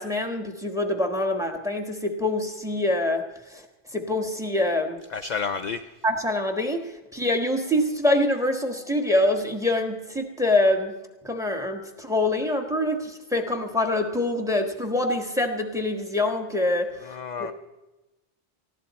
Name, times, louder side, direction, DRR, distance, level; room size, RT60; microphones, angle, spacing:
voice 1, 0.0-3.2 3.5-3.6 3.9-5.0 6.0-10.9 11.2-17.1 17.4-17.5, left 1 dB, 5° right, 5 dB, 1.3 m, -25 dB
voice 2, 5.1-5.8 17.0-17.5, left 5 dB, 50° left, 8 dB, 0.6 m, -30 dB
19.0 x 15.0 x 4.2 m, 1.0 s
omnidirectional pair, 1.1 m